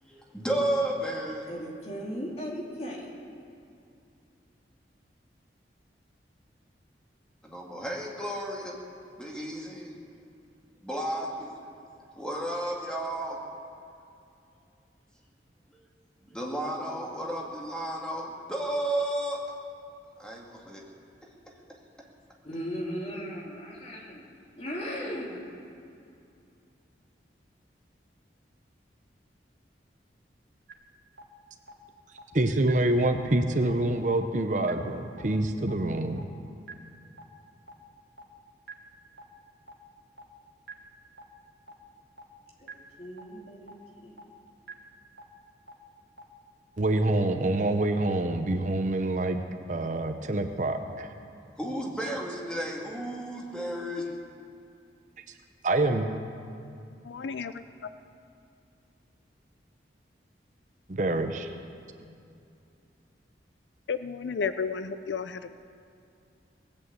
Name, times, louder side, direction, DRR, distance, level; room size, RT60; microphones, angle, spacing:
voice 1, 0.0-1.5 7.4-8.8 9.2-9.9 10.8-11.5 12.2-13.4 15.7-15.8 16.2-19.4 20.2-20.8 51.6-54.1, right 1 dB, 5° left, -2 dB, 2.0 m, -32 dB
voice 2, 1.4-3.3 22.4-24.2 24.6-25.4 42.6-42.7 43.0-44.2, equal, 35° left, -2 dB, 2.5 m, -37 dB
sound 1, 30.7-30.8 31.2-31.3 31.7-31.8 32.2-32.3 32.7-32.8 33.2-33.3 33.7-33.8 34.2-34.3 34.7-34.8 35.2-35.3 35.7-35.8 36.2-36.3 36.7-36.8 37.2-37.3 37.7-37.8 38.2-38.3 38.7-38.8 39.2-39.3 39.7-39.8 40.2-40.3 40.7-40.8 41.2-41.3 41.7-41.8 42.2-42.3 42.7-42.8 43.2-43.3 43.7-43.8 44.2-44.3 44.7-44.8 45.2-45.3 45.7-45.8 46.2-46.3, right 3 dB, 75° right, 1.4 m, -43 dB
voice 3, 32.3-36.3 46.8-49.4 49.7-51.1 55.6-56.1 60.9-61.5, right 2 dB, 45° right, 6 dB, 0.8 m, -26 dB
voice 4, 57.0-57.9 63.9-65.5, left 5 dB, 80° left, 11 dB, 0.5 m, -33 dB
19.0 x 8.6 x 8.1 m, 2.5 s
head